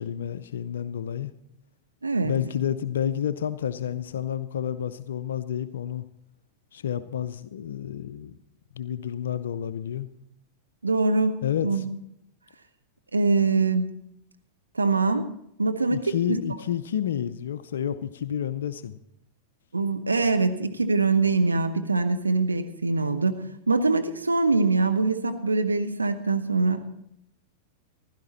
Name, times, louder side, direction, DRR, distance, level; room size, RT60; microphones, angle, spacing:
voice 1, 0.0-1.3 2.2-6.0 6.7-8.4 8.7-10.1 11.4-11.8 15.9-19.0, left 9 dB, 70° left, 12 dB, 0.5 m, -30 dB
voice 2, 2.0-2.3 10.8-11.9 13.1-13.9 14.7-15.3 15.6-16.4 19.7-26.8, right 3 dB, 90° right, 7 dB, 0.7 m, -23 dB
15.5 x 12.0 x 4.2 m, 0.76 s
figure-of-eight pair, 95°, 0 cm